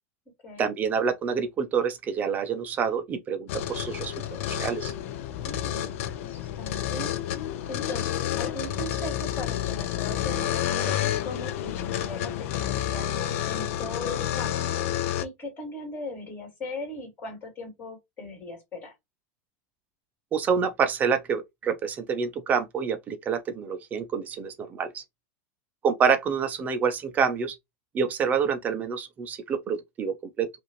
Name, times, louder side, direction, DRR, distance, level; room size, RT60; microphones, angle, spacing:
voice 1, 0.6-4.9 20.3-25.0 25.8-27.6 27.9-30.5, right 6 dB, 20° right, 0.6 m, -27 dB
sound 1, 3.5-15.2, left 11 dB, 60° left, 0.5 m, -30 dB
voice 2, 5.4-7.1 7.7-13.1 13.5-14.7 15.2-18.9, left 2 dB, 25° left, 2.7 m, -39 dB
5.4 x 2.6 x 3.0 m
supercardioid pair, 165°, 8 cm